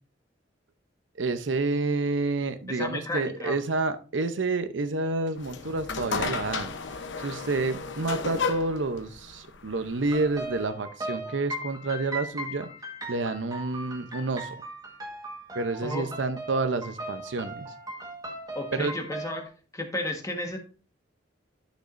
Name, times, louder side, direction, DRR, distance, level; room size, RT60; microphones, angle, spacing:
voice 1, 1.2-6.7 7.2-12.7 13.1-14.6 15.5-17.7 18.7-18.9, right 3 dB, 85° right, 11 dB, 0.7 m, -29 dB
voice 2, 2.7-3.6 15.8-16.1 18.5-19.4 19.7-20.6, left 2 dB, 20° left, 3 dB, 1.4 m, -33 dB
sound 1, 5.4-10.6, left 5 dB, 85° left, 0.9 m, -34 dB
sound 2, 10.1-19.5, right 1 dB, 20° right, 1.5 m, -38 dB
11.5 x 6.3 x 2.6 m, 0.36 s
head